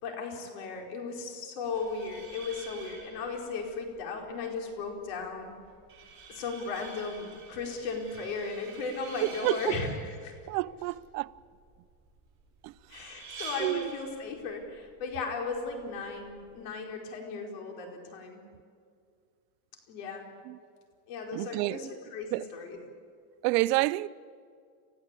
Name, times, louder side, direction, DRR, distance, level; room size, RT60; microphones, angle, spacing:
voice 1, 0.0-5.5 6.3-10.3 12.9-18.4 19.9-20.3 21.1-22.8, left 4 dB, 80° left, 5.0 m, -36 dB
sound 1, 1.6-16.6, right 4 dB, 25° right, 7.5 m, -49 dB
voice 2, 9.2-9.8 10.5-11.3 12.6-12.7 13.6-13.9 20.5-20.6 21.3-21.8 22.3-22.5 23.4-24.1, right 19 dB, 85° right, 0.8 m, -29 dB
29.0 x 15.5 x 8.4 m
supercardioid pair, 130°, 48 cm